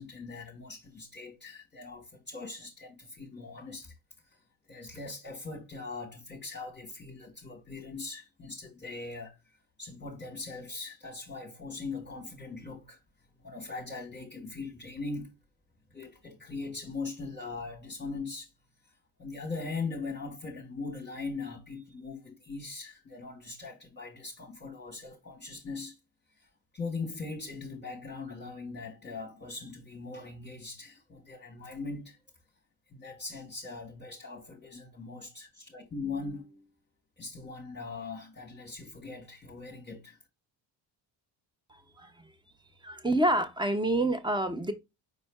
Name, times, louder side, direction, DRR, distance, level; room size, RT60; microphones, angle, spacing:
voice 1, 0.0-3.9 4.7-9.4 9.8-13.0 13.4-15.3 15.9-18.5 19.2-26.0 26.4-26.5 26.7-32.2 32.9-36.7 37.2-40.2, left 3 dB, 20° left, 1.3 m, -40 dB
voice 2, 41.7-42.1 42.8-44.7, right 1 dB, 10° right, 1.0 m, -28 dB
5.5 x 4.3 x 2.2 m
cardioid pair, 90°, 47 cm